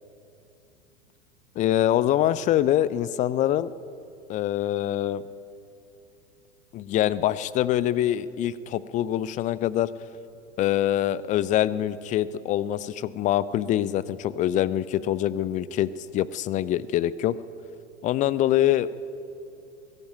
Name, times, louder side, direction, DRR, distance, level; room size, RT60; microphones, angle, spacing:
voice 1, 1.6-3.7 4.3-5.2 6.7-9.9 10.6-17.3 18.0-18.9, left 12 dB, 20° left, 18 dB, 0.5 m, -24 dB
22.0 x 15.0 x 9.2 m, 2.7 s
figure-of-eight pair, 90°, 36 cm